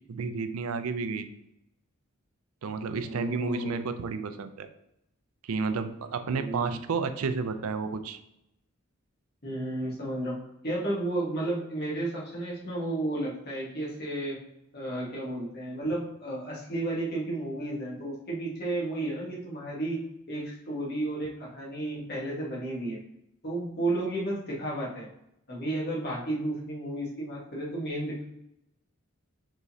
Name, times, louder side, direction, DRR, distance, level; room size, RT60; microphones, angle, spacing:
voice 1, 0.1-1.3 2.6-4.7 5.4-8.2, right 4 dB, 85° right, 10 dB, 0.4 m, -31 dB
voice 2, 3.0-3.8 6.3-6.8 9.4-10.4 10.6-14.4 14.7-20.0 20.3-23.0 23.4-25.1 25.5-28.2, right 1 dB, 50° left, -4 dB, 1.5 m, -32 dB
4.8 x 3.8 x 2.7 m, 0.82 s
head